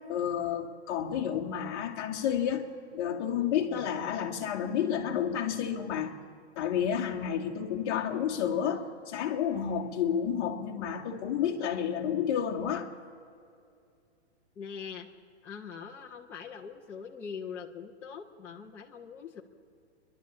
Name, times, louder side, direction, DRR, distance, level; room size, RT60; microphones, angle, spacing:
voice 1, 0.1-2.7 2.9-6.1 6.5-12.9, left 8 dB, 20° left, 1 dB, 1.6 m, -30 dB
voice 2, 14.6-15.1 15.4-19.4, left 6 dB, 5° left, -3 dB, 0.5 m, -42 dB
28.0 x 11.5 x 8.4 m, 2.4 s
hypercardioid pair, 170°, 35 cm